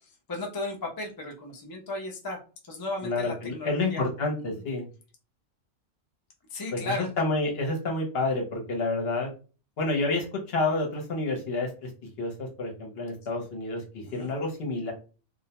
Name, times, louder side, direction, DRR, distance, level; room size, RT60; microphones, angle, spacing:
voice 1, 0.3-2.4 2.7-4.0 6.5-7.1 14.1-14.3, left 2 dB, 30° left, 0 dB, 0.4 m, -35 dB
voice 2, 3.0-4.9 6.7-9.3 9.8-11.9 12.2-14.9, left 2 dB, 60° left, 1 dB, 0.9 m, -29 dB
2.4 x 2.1 x 2.8 m, 0.35 s
omnidirectional pair, 1.3 m